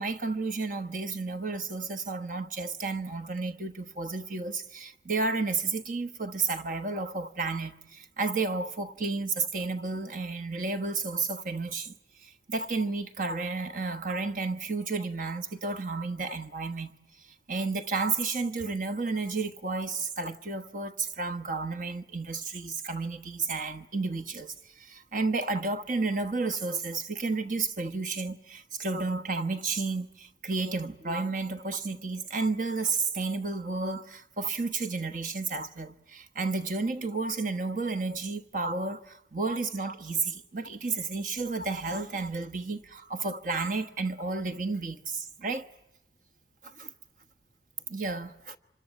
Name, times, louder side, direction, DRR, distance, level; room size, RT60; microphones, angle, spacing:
voice 1, 0.0-11.9 12.2-16.9 17.2-45.7 46.6-46.9 47.9-48.6, right 3 dB, 50° right, 1.2 m, -32 dB
25.5 x 25.5 x 9.0 m
head